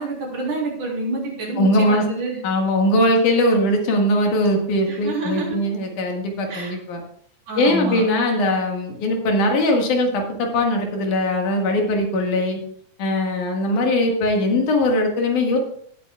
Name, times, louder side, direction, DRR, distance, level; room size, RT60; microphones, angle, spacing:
voice 1, 0.0-2.4 4.9-5.6 6.5-6.7 7.5-8.0, right 2 dB, 75° right, -3 dB, 5.1 m, -27 dB
voice 2, 1.6-2.0 2.4-7.0 7.5-12.6 13.0-15.6, left 1 dB, 85° left, 2 dB, 3.3 m, -20 dB
17.5 x 8.8 x 2.4 m, 0.63 s
omnidirectional pair, 3.5 m